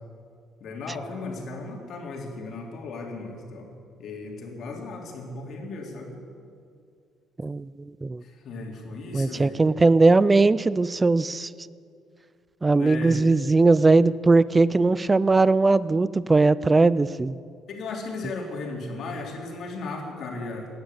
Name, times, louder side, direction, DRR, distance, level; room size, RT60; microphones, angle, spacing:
voice 1, 0.6-3.7 4.0-6.1 8.2-9.6 12.7-13.2 17.7-20.7, left 3 dB, 60° left, 1 dB, 3.2 m, -36 dB
voice 2, 7.4-8.2 9.1-11.5 12.6-17.4, right 3 dB, 20° right, 18 dB, 0.4 m, -19 dB
17.0 x 10.0 x 8.1 m, 2.3 s
cardioid pair, 125°, 0 cm